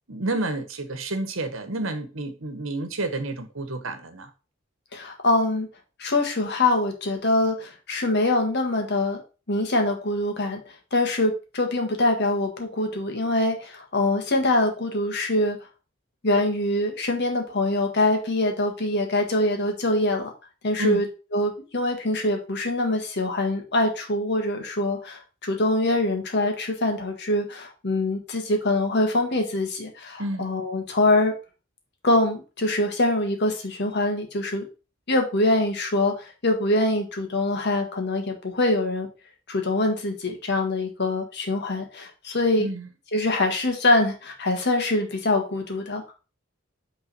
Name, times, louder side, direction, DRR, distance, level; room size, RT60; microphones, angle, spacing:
voice 1, 0.1-4.3 20.8-21.0 30.2-30.5 42.6-42.9, right 2 dB, 70° right, 1.2 m, -30 dB
voice 2, 4.9-5.7 6.0-9.2 9.5-15.6 16.2-20.3 20.6-21.0 21.3-31.3 32.0-34.7 35.1-39.1 39.5-42.7 43.1-46.0, left 2 dB, 55° left, 1.7 m, -24 dB
5.7 x 3.9 x 5.4 m
head